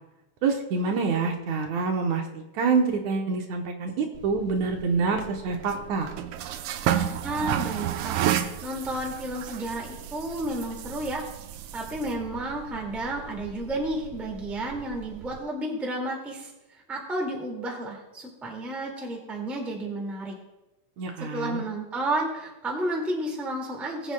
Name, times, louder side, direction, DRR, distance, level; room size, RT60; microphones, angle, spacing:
voice 1, 0.4-6.1 21.0-21.6, right 4 dB, 70° right, 2 dB, 2.2 m, -26 dB
sound 1, 4.1-15.4, right 10 dB, 90° right, 2.2 m, -33 dB
voice 2, 7.2-8.2 8.6-11.3 11.7-16.5 16.9-20.3 21.2-24.1, right 1 dB, ahead, -1 dB, 1.2 m, -31 dB
20.5 x 7.9 x 2.2 m, 0.98 s
omnidirectional pair, 3.6 m